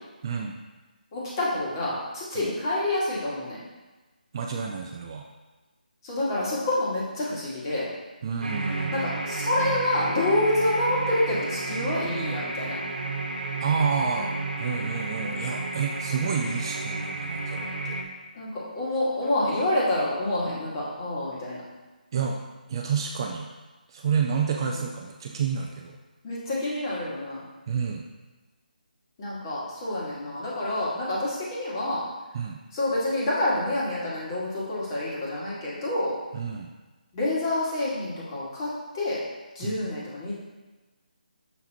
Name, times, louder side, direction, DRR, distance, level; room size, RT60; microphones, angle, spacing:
voice 1, 0.2-0.6 2.4-2.5 4.3-5.3 8.2-8.9 13.6-14.3 14.6-18.0 22.1-22.4 22.7-23.5 23.9-26.0 27.7-28.1 32.3-32.6 36.3-36.7 39.6-39.9, right 6 dB, 30° right, 2 dB, 0.5 m, -29 dB
voice 2, 1.1-3.6 6.0-7.9 8.9-12.8 18.3-21.6 24.7-24.8 26.2-27.4 29.2-32.0 32.7-36.2 37.1-39.2 39.5-40.3, left 1 dB, 25° left, -7 dB, 2.1 m, -27 dB
sound 1, 8.4-18.0, right 2 dB, 80° right, 1.2 m, -32 dB
6.6 x 5.7 x 3.0 m, 1.2 s
figure-of-eight pair, 160°, 5 cm